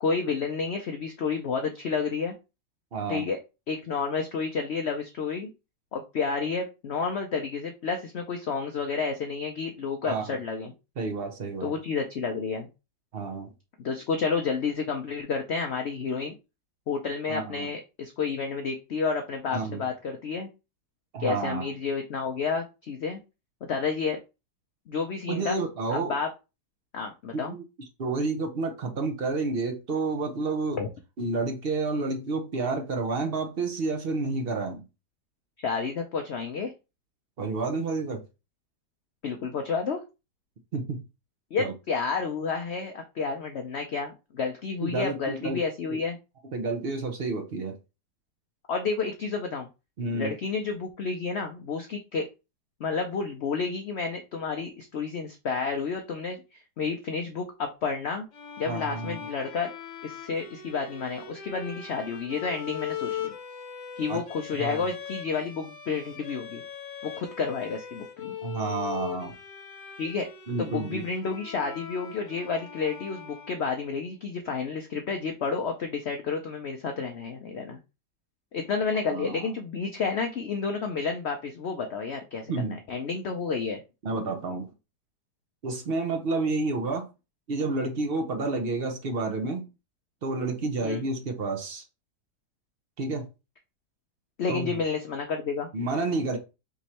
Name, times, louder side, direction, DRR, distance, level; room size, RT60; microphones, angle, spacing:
voice 1, 0.0-2.3 3.1-3.4 3.7-5.5 5.9-10.7 11.6-12.7 13.8-16.3 16.9-20.5 21.2-23.2 23.6-24.2 24.9-25.6 25.9-26.3 26.9-27.6 30.8-30.9 35.6-36.7 39.2-40.0 41.5-46.2 48.7-49.7 50.1-52.3 52.8-58.3 58.6-59.7 60.0-63.3 64.0-66.6 67.0-68.4 70.0-70.3 70.6-77.8 78.5-83.8 90.8-91.0 94.4-95.7, left 5 dB, 70° left, 0.6 m, -30 dB
voice 2, 2.9-3.3 10.0-10.4 11.0-11.7 13.1-13.5 17.3-17.7 19.5-19.8 21.1-21.7 25.3-26.1 27.3-27.6 28.0-30.8 31.2-34.8 37.4-38.2 40.7-41.0 41.6-41.7 44.8-45.6 45.9-46.0 46.5-47.8 50.0-50.3 58.7-59.2 64.1-64.2 64.6-64.8 68.4-69.3 70.5-71.0 79.1-79.5 82.5-82.8 84.0-84.7 85.6-87.1 87.5-89.6 90.2-91.8 93.0-93.3 94.5-94.7 95.7-96.4, right 3 dB, 50° right, 0.7 m, -30 dB
sound 1, 58.3-74.0, left 8 dB, 50° left, 1.2 m, -40 dB
3.6 x 3.1 x 4.2 m
omnidirectional pair, 1.8 m